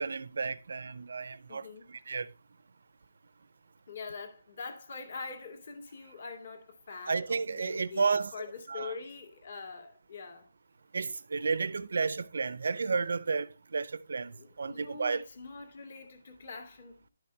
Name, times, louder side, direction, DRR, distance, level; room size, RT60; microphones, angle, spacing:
voice 1, 0.0-2.3 7.1-8.3 8.7-8.9 10.9-14.3 14.6-15.2, right 4 dB, 65° right, 0.7 m, -32 dB
voice 2, 1.5-1.9 3.9-10.5 14.4-17.0, left 4 dB, 45° left, 2.2 m, -44 dB
11.5 x 6.0 x 3.3 m
hypercardioid pair, 175°, 0 cm